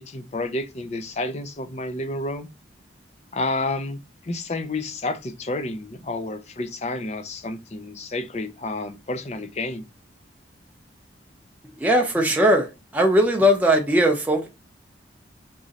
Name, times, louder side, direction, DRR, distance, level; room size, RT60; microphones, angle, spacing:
voice 1, 0.0-2.5 3.3-4.0 4.2-9.8, left 2 dB, 35° left, 0.5 m, -30 dB
voice 2, 11.8-12.7 12.9-14.5, equal, 10° right, 0.6 m, -19 dB
3.7 x 3.1 x 4.0 m
head